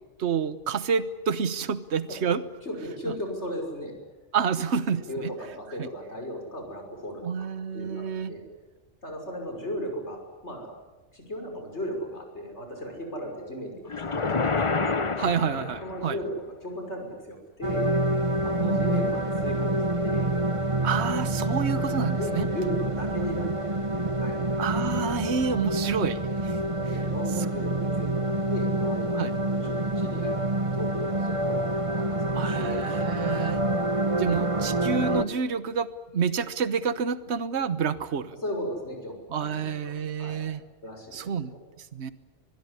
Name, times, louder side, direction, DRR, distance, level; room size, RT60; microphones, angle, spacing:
voice 1, 0.2-2.4 4.3-5.3 5.8-5.9 7.2-8.3 15.2-16.2 18.6-19.0 20.8-22.5 24.6-26.6 29.1-29.3 32.4-33.6 34.2-38.4 39.3-40.6 41.1-42.1, right 6 dB, 75° right, 14 dB, 1.3 m, -29 dB
voice 2, 2.6-3.9 5.1-7.5 7.7-8.4 9.0-10.7 11.1-14.8 15.8-18.1 18.4-19.8 20.0-20.4 22.1-25.1 26.8-30.5 30.7-33.4 38.4-40.4 40.8-41.6, equal, 75° left, 3 dB, 6.2 m, -36 dB
sound 1, 13.9-16.2, left 4 dB, 30° left, 0.9 m, -28 dB
sound 2, 17.6-35.2, right 1 dB, 30° right, 1.1 m, -27 dB
24.5 x 21.5 x 9.9 m, 1.2 s
omnidirectional pair, 1.2 m